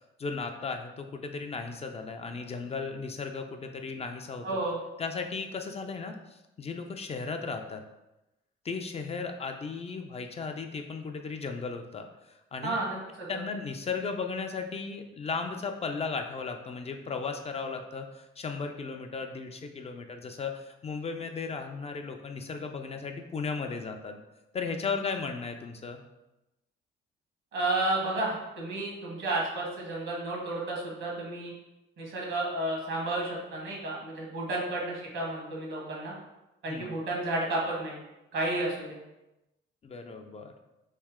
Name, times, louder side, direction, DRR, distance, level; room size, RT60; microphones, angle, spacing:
voice 1, 0.2-4.5 5.0-7.8 8.6-12.1 12.5-12.8 13.3-24.2 24.5-26.0 36.7-36.9 39.8-40.5, left 4 dB, 30° left, 5 dB, 0.4 m, -35 dB
voice 2, 4.4-4.8 12.6-13.3 27.5-31.5 32.0-36.1 36.6-38.0 38.3-39.0, right 2 dB, 75° right, -3 dB, 1.4 m, -32 dB
3.2 x 2.7 x 3.5 m, 0.96 s
cardioid pair, 90°, 20 cm